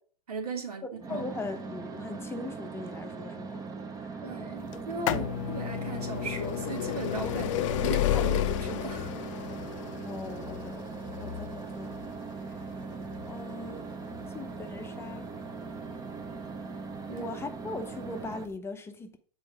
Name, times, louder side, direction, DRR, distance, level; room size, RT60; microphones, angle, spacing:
voice 1, 0.3-1.2 4.2-9.1 17.1-17.3, right 4 dB, 80° right, 1.8 m, -37 dB
sound 1, 1.0-18.4, right 4 dB, 20° right, 0.8 m, -40 dB
voice 2, 1.1-3.7 4.0-4.3 5.1-5.3 10.0-12.0 12.5-12.7 13.2-13.9 14.3-15.3 17.1-19.2, left 3 dB, 15° left, 0.7 m, -40 dB
sound 2, 4.7-16.4 17.2-17.3 18.2-18.3 18.5-18.6, left 13 dB, 55° left, 0.6 m, -32 dB
7.0 x 4.5 x 4.7 m
hypercardioid pair, 115°, 19 cm